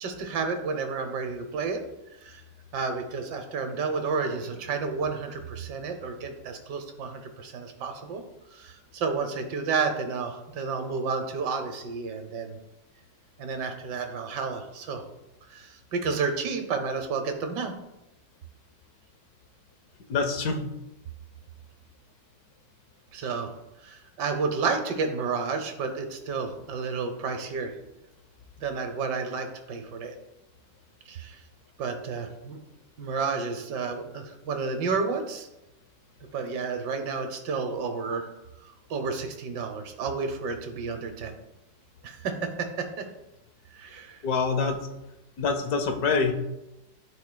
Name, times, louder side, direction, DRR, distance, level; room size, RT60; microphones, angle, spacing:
voice 1, 0.0-1.8 2.2-2.4 2.7-8.2 8.5-12.6 13.4-15.0 15.5-17.7 23.1-23.5 23.8-27.7 28.6-30.1 31.1-31.4 31.8-32.6 33.0-35.5 36.3-38.2 38.9-41.3 42.0-43.1 43.7-44.2, right 4 dB, 70° right, 6 dB, 1.4 m, -31 dB
voice 2, 20.1-20.6 44.2-44.8 45.4-46.3, left 4 dB, 60° left, 5 dB, 1.2 m, -25 dB
12.0 x 4.5 x 2.2 m, 0.94 s
omnidirectional pair, 2.0 m